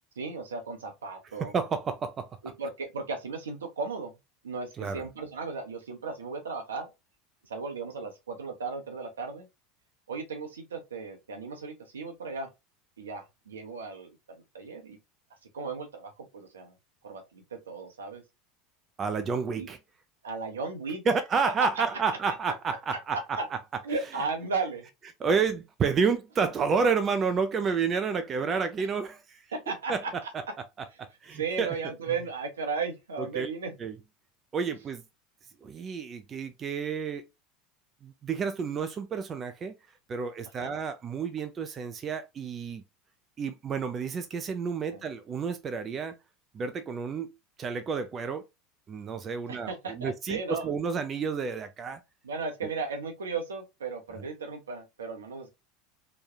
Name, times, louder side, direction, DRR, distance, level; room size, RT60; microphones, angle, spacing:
voice 1, 0.2-1.5 2.6-4.1 4.4-6.9 7.5-9.5 10.1-12.5 13.0-15.0 15.5-16.7 17.0-18.2 19.5-19.7 20.2-21.0 21.5-21.8 22.5-22.6 23.1-23.5 23.8-24.9 29.5-30.1 30.9-31.0 31.3-33.7 40.6-40.8 44.9-45.0 49.5-50.7 52.2-55.5, right 4 dB, 85° right, 0.7 m, -35 dB
voice 2, 1.4-2.3 4.8-5.0 19.0-19.8 21.1-23.4 25.2-29.4 29.9-30.2 31.0-31.7 33.3-33.5 33.8-34.0 34.5-35.0 35.6-37.3 38.0-39.7 40.1-42.8 43.4-46.2 46.5-47.3 47.6-48.5 48.9-52.0, right 5 dB, 35° right, 0.4 m, -30 dB
3.0 x 2.2 x 2.3 m
hypercardioid pair, 80°, 0 cm